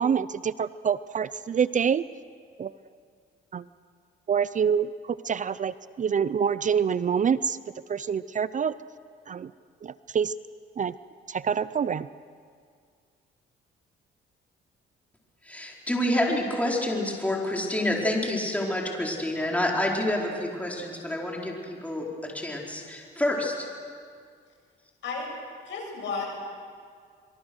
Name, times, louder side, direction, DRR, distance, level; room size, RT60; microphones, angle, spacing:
voice 1, 0.0-2.0 2.6-2.7 3.5-3.6 4.3-7.6 7.9-8.7 9.3-9.5 9.8-10.3 10.8-10.9 11.3-12.1, right 7 dB, 40° right, 16 dB, 0.5 m, -26 dB
voice 2, 15.4-23.7, left 1 dB, 5° left, -1 dB, 4.7 m, -28 dB
voice 3, 25.6-26.4, left 4 dB, 70° left, 0 dB, 7.5 m, -33 dB
25.5 x 24.0 x 6.3 m, 2.1 s
cardioid pair, 90°, 20 cm